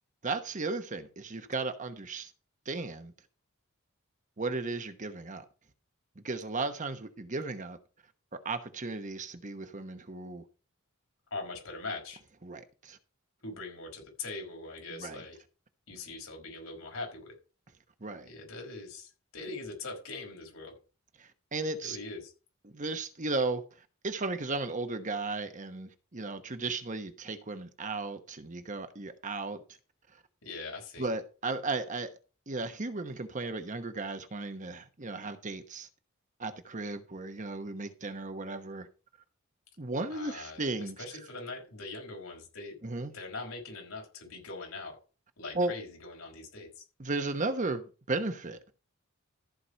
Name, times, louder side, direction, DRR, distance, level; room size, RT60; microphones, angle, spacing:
voice 1, 0.2-2.3 2.7-3.1 4.4-5.5 6.2-7.8 8.3-10.5 12.4-13.0 14.9-15.2 18.0-18.3 21.2-22.0 22.6-23.6 24.0-29.6 31.0-32.1 32.5-35.9 36.4-38.9 39.8-41.0 42.8-43.1 45.5-45.7 47.0-48.6, right 3 dB, 35° right, 1.1 m, -35 dB
voice 2, 11.3-12.2 13.4-15.4 15.9-17.3 18.2-20.7 21.8-22.3 30.4-31.1 40.1-42.8 43.1-45.0 45.4-46.8, left 3 dB, 85° left, 4.9 m, -42 dB
14.0 x 4.9 x 5.7 m
head